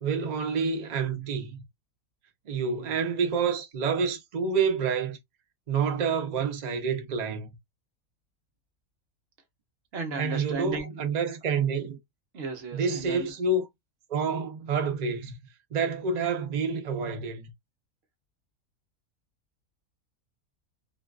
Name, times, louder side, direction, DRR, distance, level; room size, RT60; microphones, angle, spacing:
voice 1, 0.0-1.6 2.5-5.2 5.7-7.5 10.1-12.0 12.7-13.7 14.1-15.3 15.7-17.5, right 5 dB, 85° right, 0.3 m, -28 dB
voice 2, 9.9-11.1 12.3-13.3, right 3 dB, 55° right, 0.8 m, -35 dB
2.6 x 2.2 x 2.3 m
omnidirectional pair, 1.5 m